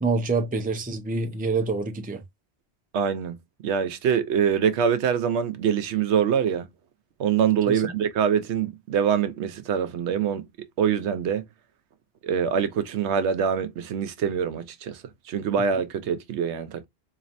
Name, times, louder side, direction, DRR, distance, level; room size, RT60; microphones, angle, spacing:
voice 1, 0.0-2.2 7.7-7.8, right 3 dB, 10° right, 0.4 m, -26 dB
voice 2, 2.9-3.4 3.6-6.6 7.2-10.4 10.8-11.4 12.2-15.0 15.3-16.9, right 7 dB, 85° right, 0.9 m, -24 dB
4.1 x 2.7 x 2.5 m
omnidirectional pair, 1.1 m